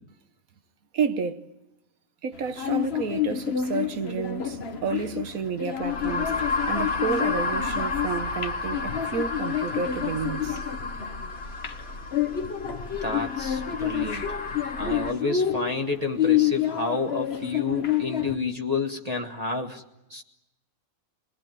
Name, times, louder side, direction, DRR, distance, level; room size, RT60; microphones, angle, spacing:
voice 1, 0.9-1.4 2.2-10.6, right 6 dB, 85° right, 1.7 m, -30 dB
sound 1, 2.3-18.4, left 10 dB, 50° left, 1.3 m, -29 dB
sound 2, 5.8-15.1, left 3 dB, 90° left, 2.4 m, -32 dB
voice 2, 13.0-14.3 14.8-19.8 20.1-20.2, left 3 dB, 30° right, 1.5 m, -30 dB
28.5 x 21.0 x 9.2 m
omnidirectional pair, 1.4 m